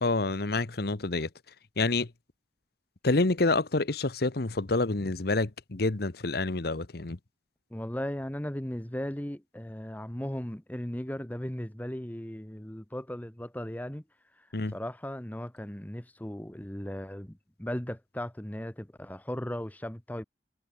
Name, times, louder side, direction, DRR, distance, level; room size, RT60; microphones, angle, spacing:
voice 1, 0.0-1.3 1.8-2.1 3.0-7.2 14.5-14.7, left 3 dB, 60° left, 1.1 m, -28 dB
voice 2, 7.7-14.0 14.7-20.2, equal, 10° left, 1.1 m, -37 dB
head